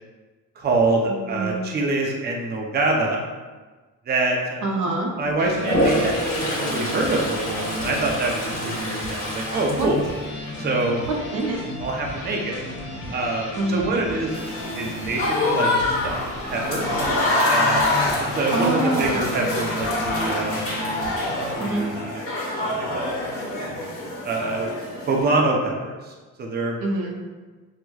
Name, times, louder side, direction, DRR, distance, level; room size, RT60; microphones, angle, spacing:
voice 1, 0.6-3.2 4.1-4.6 5.2-10.1 10.6-11.0 11.8-12.6 13.1-14.4 14.8-16.2 16.5-16.9 17.5-18.0 18.3-20.7 21.5-22.2 22.6-23.1 24.2-24.7 25.1-26.8, right 2 dB, 35° right, 0 dB, 0.5 m, -25 dB
voice 2, 1.1-1.7 4.6-5.1 9.7-9.9 11.3-11.6 13.6-14.0 18.2-19.2 21.6-21.9 26.8-27.1, right 2 dB, 75° right, -1 dB, 0.7 m, -26 dB
sound 1, 5.4-21.6, left 1 dB, 75° left, 0.7 m, -34 dB
Toilet flush, 5.5-10.7 11.1-11.5 16.0-16.1 16.4-17.1, equal, 25° left, 1.2 m, -27 dB
Applause / Crowd, 14.3-25.2, left 2 dB, 50° left, 1.2 m, -25 dB
4.5 x 2.1 x 2.2 m, 1.3 s
cardioid pair, 90°, 30 cm